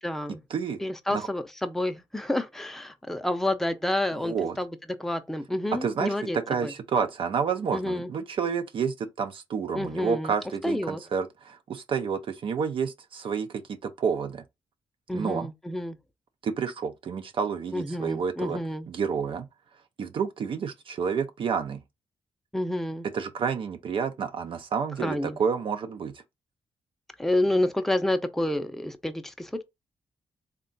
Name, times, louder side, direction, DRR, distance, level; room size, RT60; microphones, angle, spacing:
voice 1, 0.0-0.4 0.8-6.7 7.7-8.1 9.7-10.3 10.6-11.0 15.1-16.0 17.7-18.9 22.5-23.1 25.0-25.4 27.2-29.6, left 1 dB, 5° left, 0.5 m, -29 dB
voice 2, 4.2-4.6 5.8-6.1 6.5-13.5 13.8-14.4 15.1-15.5 16.4-18.6 18.9-19.5 20.0-21.8 23.1-26.1, right 6 dB, 60° right, 0.5 m, -29 dB
3.5 x 2.2 x 3.8 m
cardioid pair, 80°, 10 cm